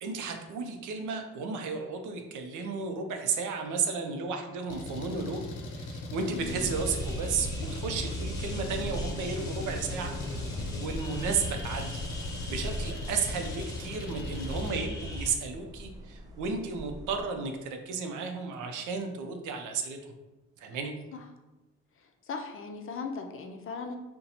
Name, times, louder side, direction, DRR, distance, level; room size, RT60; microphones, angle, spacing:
voice 1, 0.0-12.0 12.5-20.1 20.6-20.9, right 5 dB, 80° right, 5 dB, 0.6 m, -33 dB
Engine, 4.7-14.7, left 3 dB, 90° left, 0.6 m, -40 dB
voice 2, 6.3-6.6 21.1-21.2 22.3-24.0, left 4 dB, 45° left, 4 dB, 0.5 m, -38 dB
sound 1, 6.3-17.2, equal, 15° right, 0.4 m, -42 dB
sound 2, 6.4-15.3, equal, 10° left, 0.9 m, -38 dB
2.7 x 2.2 x 4.0 m, 1.1 s
cardioid pair, 90°, 30 cm